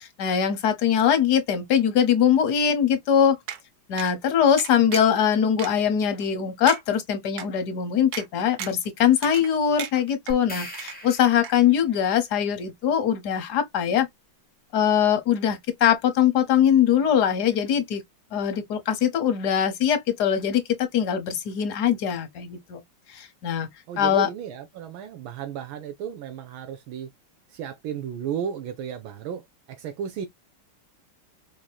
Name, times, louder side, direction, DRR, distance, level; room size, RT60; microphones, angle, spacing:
voice 1, 0.0-3.4 3.9-14.1 14.7-18.0 18.3-22.8 23.1-23.7 24.0-24.3, left 9 dB, 60° left, 1.4 m, -22 dB
sound 1, 3.5-3.6 4.0-4.1 4.6-5.2 5.6-5.7 6.2-6.3 6.7-6.8 7.4-7.5 8.1-8.3 8.6-8.9 9.2-9.5 9.8-10.4 10.7-11.2 11.4-11.5, right 9 dB, 65° right, 1.0 m, -35 dB
sound 2, 10.3-11.9, left 1 dB, 5° left, 1.3 m, -40 dB
voice 2, 23.9-27.1 27.5-30.3, right 8 dB, 80° right, 1.5 m, -34 dB
4.9 x 2.8 x 2.3 m
omnidirectional pair, 2.2 m